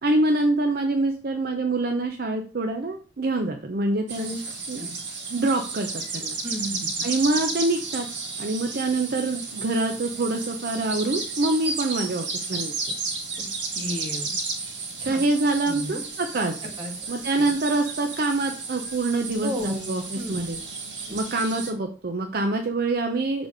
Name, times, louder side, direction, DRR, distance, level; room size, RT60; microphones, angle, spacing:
voice 1, 0.0-4.4 4.7-4.8 5.3-5.9 6.1-6.3 7.0-8.1 8.4-12.7 15.0-16.5 17.1-20.6 21.1-23.5, right 2 dB, 55° right, 4 dB, 0.6 m, -25 dB
sound 1, 4.1-21.7, right 4 dB, 75° right, 1.8 m, -33 dB
voice 2, 6.4-7.1 13.7-14.3 15.0-15.3 15.7-16.0 16.8-16.9 17.4-17.5 19.4-19.9 20.1-20.6 21.1-21.2, equal, 30° right, -1 dB, 1.8 m, -34 dB
6.5 x 4.0 x 4.8 m, 0.37 s
head